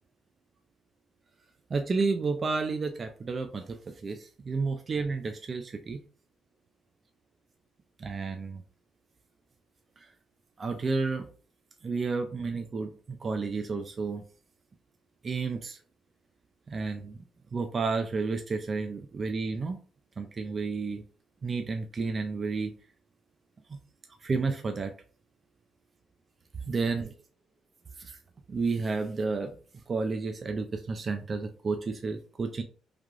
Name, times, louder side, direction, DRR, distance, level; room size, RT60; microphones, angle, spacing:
voice 1, 1.7-6.0 8.0-8.6 10.6-11.3 11.8-14.2 15.2-15.8 16.7-17.2 17.5-19.8 20.2-21.0 21.4-22.7 24.2-24.9 26.7-27.1 28.0-28.2 28.5-29.5 29.9-32.6, right 4 dB, 40° right, 6 dB, 0.3 m, -31 dB
3.2 x 2.4 x 2.3 m, 0.39 s
cardioid pair, 90°, 0 cm